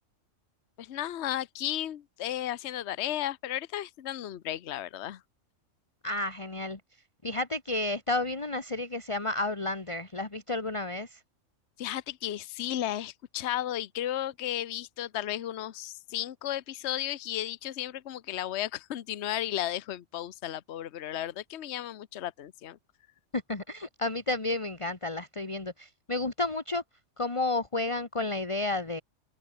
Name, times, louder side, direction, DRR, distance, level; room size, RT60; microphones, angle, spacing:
voice 1, 0.8-5.2 11.8-22.8, left 12 dB, 60° left, 1.0 m, -34 dB
voice 2, 6.0-6.8 7.2-11.2 23.3-26.8 27.2-29.0, left 2 dB, 25° left, 1.8 m, -31 dB
omnidirectional pair, 1.3 m